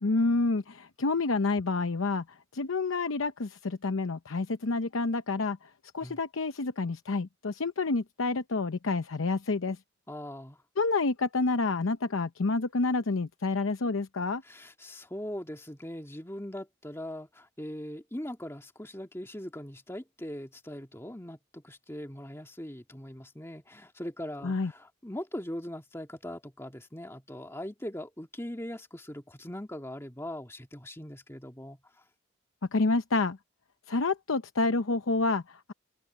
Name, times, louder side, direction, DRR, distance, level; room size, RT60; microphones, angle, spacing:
voice 1, 0.0-9.8 10.8-14.4 24.4-24.7 32.7-33.4 33.9-35.7, left 3 dB, 80° left, 0.8 m, -29 dB
voice 2, 10.1-10.6 14.4-32.0, left 1 dB, 10° left, 1.9 m, -41 dB
head